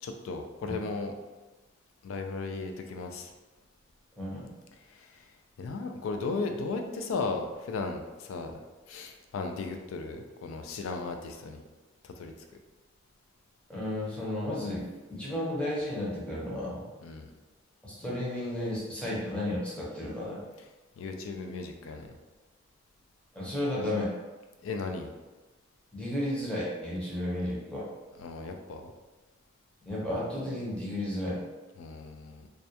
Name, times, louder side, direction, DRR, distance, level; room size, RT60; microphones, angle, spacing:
voice 1, 0.0-1.1 2.0-3.3 4.9-5.3 5.6-8.6 8.9-11.6 12.0-12.3 17.0-17.3 21.0-22.1 24.6-25.1 28.2-28.9 31.8-32.5, left 3 dB, 85° left, 4 dB, 0.3 m, -36 dB
voice 2, 4.2-4.5 13.7-16.9 17.8-20.4 23.3-24.1 25.9-27.9 29.9-31.4, left 1 dB, 5° left, -7 dB, 0.6 m, -33 dB
2.3 x 2.1 x 2.7 m, 1.2 s
head